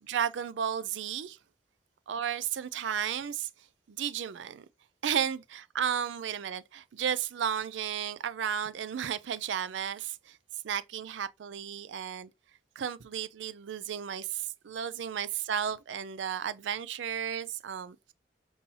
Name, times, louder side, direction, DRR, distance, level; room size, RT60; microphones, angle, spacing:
voice 1, 0.0-1.4 2.1-3.5 3.9-4.6 5.0-10.4 10.6-12.3 12.8-18.1, right 8 dB, 85° right, 0.4 m, -33 dB
5.3 x 2.7 x 2.8 m
head